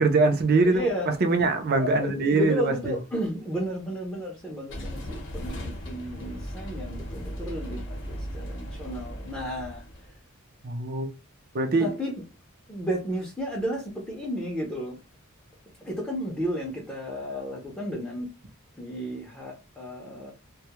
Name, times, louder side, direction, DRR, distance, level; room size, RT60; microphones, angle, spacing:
voice 1, 0.0-2.9 10.6-11.1 11.5-11.9, right 3 dB, 50° right, 0.5 m, -23 dB
voice 2, 0.6-1.1 1.8-9.8 11.8-12.1 12.7-15.0 15.8-18.3 18.8-20.3, equal, 10° left, 0.5 m, -33 dB
sound 1, 4.7-10.2, equal, 60° left, 0.7 m, -37 dB
2.2 x 2.1 x 2.8 m
head